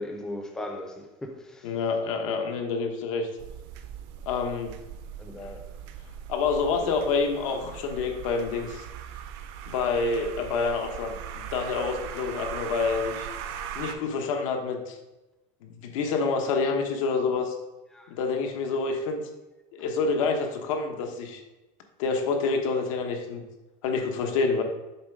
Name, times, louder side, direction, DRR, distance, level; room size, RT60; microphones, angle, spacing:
voice 1, 0.0-1.7 5.2-5.6 6.7-6.9 17.9-18.1, left 1 dB, 5° left, 0.4 m, -38 dB
voice 2, 1.6-3.3 4.3-4.7 5.4-5.5 6.3-8.8 9.7-13.3 13.7-15.0 15.6-17.6 18.1-19.2 19.7-21.4 22.0-23.4 23.8-24.6, left 4 dB, 80° left, 1.1 m, -27 dB
sound 1, 3.4-14.0, right 9 dB, 55° right, 0.6 m, -40 dB
7.2 x 3.3 x 5.0 m
cardioid pair, 180°, 17 cm